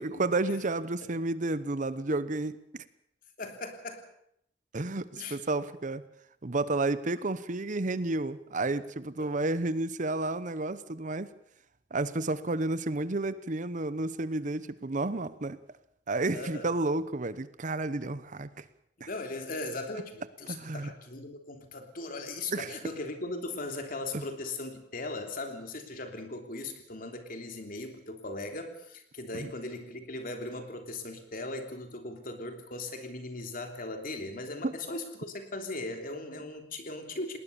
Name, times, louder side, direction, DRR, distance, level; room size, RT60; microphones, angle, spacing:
voice 1, 0.0-2.8 4.7-6.0 6.4-11.3 11.9-15.6 16.1-18.6 19.0-19.1 20.5-20.9 22.5-22.7 24.1-24.2 29.3-29.5 34.6-34.8, right 2 dB, 45° right, 15 dB, 0.9 m, -31 dB
voice 2, 3.4-4.0 5.2-5.4 9.2-9.4 16.3-16.7 19.0-37.4, left 2 dB, 55° left, 5 dB, 3.2 m, -38 dB
19.5 x 19.5 x 7.0 m, 0.73 s
head